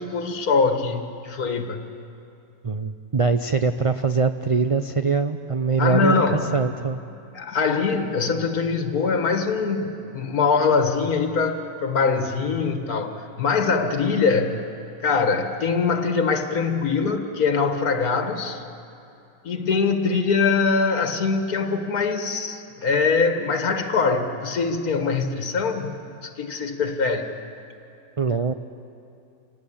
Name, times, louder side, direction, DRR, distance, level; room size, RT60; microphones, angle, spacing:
voice 1, 0.0-1.8 5.8-6.5 7.3-14.6 15.0-18.6 19.4-27.3, left 4 dB, 75° left, 6 dB, 2.0 m, -23 dB
voice 2, 2.6-6.2 6.5-7.0 28.2-28.5, right 5 dB, 55° right, 8 dB, 0.3 m, -22 dB
27.0 x 18.5 x 8.8 m, 2.6 s
omnidirectional pair, 1.6 m